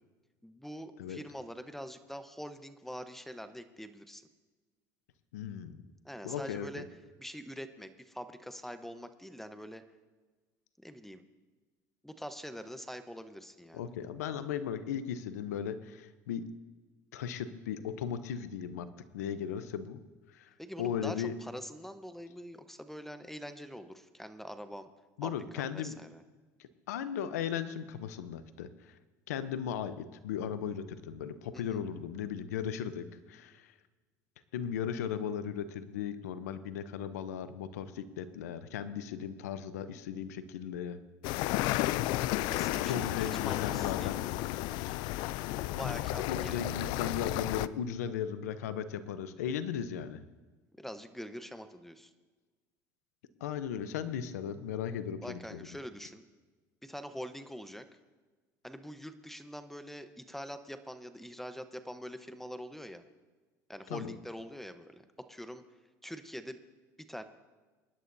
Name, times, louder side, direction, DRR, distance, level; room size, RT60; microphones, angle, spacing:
voice 1, 0.4-4.2 6.0-6.8 7.2-9.8 10.8-11.2 12.0-13.8 20.6-24.9 25.2-26.2 31.5-31.8 42.5-44.1 45.7-46.7 50.8-52.1 55.2-56.2 56.8-57.9 58.6-63.0 63.7-65.0 65.3-65.6 66.0-66.6 67.0-67.2, equal, 5° left, 10 dB, 1.0 m, -44 dB
voice 2, 5.3-5.8 6.2-6.8 13.7-16.5 17.1-18.9 19.1-20.0 20.3-20.5 20.8-21.3 25.2-26.0 26.6-28.9 29.3-33.7 34.5-41.0 42.8-44.2 45.9-50.2 53.4-55.7 63.9-64.1, left 8 dB, 90° left, 13 dB, 0.8 m, -37 dB
sound 1, 41.2-47.7, left 16 dB, 70° left, 0.4 m, -32 dB
24.5 x 11.0 x 2.7 m, 1.3 s
supercardioid pair, 85°, 8 cm